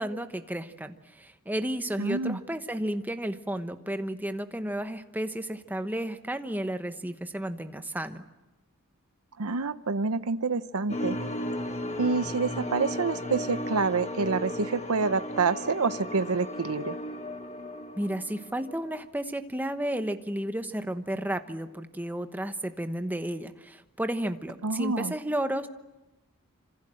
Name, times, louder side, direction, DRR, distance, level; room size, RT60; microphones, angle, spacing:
voice 1, 0.0-8.2 18.0-25.7, right 1 dB, 10° right, 8 dB, 1.1 m, -32 dB
voice 2, 2.0-2.4 9.4-11.2 12.0-17.0 24.6-25.1, right 4 dB, 75° right, 12 dB, 0.8 m, -27 dB
sound 1, 10.9-19.1, left 1 dB, 30° left, 1.6 m, -35 dB
26.5 x 26.5 x 7.7 m, 1.1 s
head